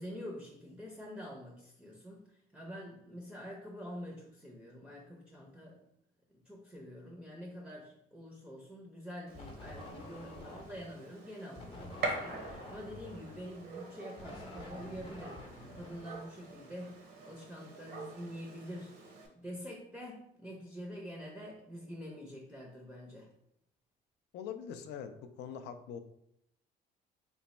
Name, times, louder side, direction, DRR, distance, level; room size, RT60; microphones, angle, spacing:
voice 1, 0.0-5.8 6.5-19.1 19.3-23.3, equal, 5° right, -2 dB, 0.5 m, -46 dB
sound 1, 9.3-11.0 11.6-16.7, left 2 dB, 35° left, 0.7 m, -49 dB
Gunshot gunfire, 9.3-19.3, right 3 dB, 65° right, 0.8 m, -45 dB
voice 2, 24.3-26.0, left 8 dB, 80° left, 8 dB, 0.4 m, -43 dB
3.1 x 2.1 x 4.1 m, 0.75 s
cardioid pair, 110°, 17 cm